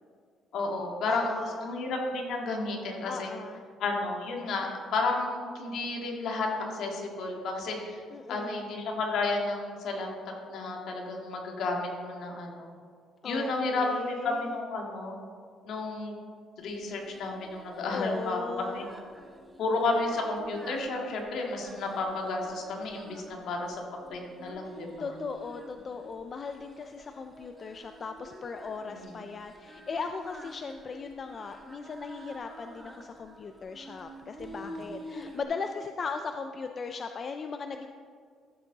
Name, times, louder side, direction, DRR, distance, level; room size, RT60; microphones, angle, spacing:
voice 1, 0.5-1.3 1.6-3.3 3.8-8.0 8.3-10.1 10.5-12.7 13.2-15.2 15.6-16.2 16.6-18.9 19.6-23.8 24.1-25.1 28.9-29.0, left 3 dB, 60° left, 0 dB, 1.8 m, -32 dB
voice 2, 1.1-1.8 3.0-3.7 8.1-8.7 13.2-14.6 17.9-18.8 24.6-37.9, left 4 dB, 30° left, 6 dB, 0.4 m, -38 dB
Singing, 16.7-35.4, equal, 10° right, 0.9 m, -49 dB
14.0 x 7.1 x 3.9 m, 2.1 s
cardioid pair, 165°, 0 cm